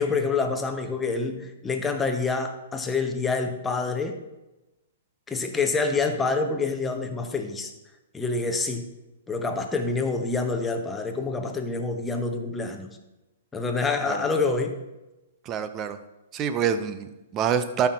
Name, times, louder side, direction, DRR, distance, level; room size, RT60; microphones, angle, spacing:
voice 1, 0.0-4.2 5.3-7.7 8.1-8.9 9.3-12.9 13.5-14.8, left 4 dB, 10° left, 4 dB, 1.0 m, -27 dB
voice 2, 15.5-16.0 16.3-17.9, right 8 dB, 25° right, 11 dB, 0.7 m, -26 dB
12.5 x 5.8 x 3.8 m, 1.0 s
hypercardioid pair, 135°, 0 cm